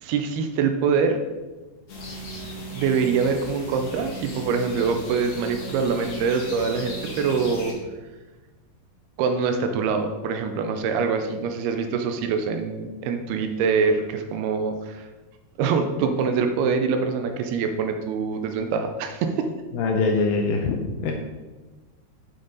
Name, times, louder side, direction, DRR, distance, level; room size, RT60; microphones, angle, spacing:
voice 1, 0.0-1.2 2.7-7.7 9.2-15.1 15.6-19.5, right 5 dB, 80° right, 6 dB, 2.5 m, -24 dB
sound 1, 1.9-7.7, right 1 dB, 50° left, 1.5 m, -36 dB
voice 2, 19.8-20.8 21.0-21.1, left 4 dB, 80° left, 3 dB, 2.1 m, -22 dB
8.8 x 7.0 x 4.0 m, 1.2 s
omnidirectional pair, 4.7 m